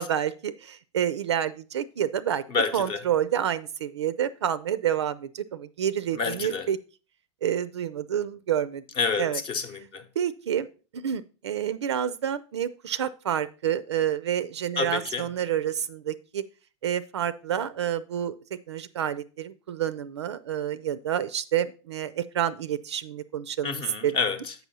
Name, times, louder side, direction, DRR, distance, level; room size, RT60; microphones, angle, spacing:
voice 1, 0.0-2.4 2.7-6.8 7.4-8.8 9.2-9.4 10.2-10.7 10.9-16.4 16.8-18.3 18.7-24.1, right 10 dB, 65° right, 0.4 m, -28 dB
voice 2, 2.5-3.0 6.1-6.7 9.0-10.0 14.8-15.3 23.6-24.5, left 5 dB, 35° left, 0.9 m, -29 dB
8.0 x 5.5 x 4.1 m
figure-of-eight pair, 85°, 15 cm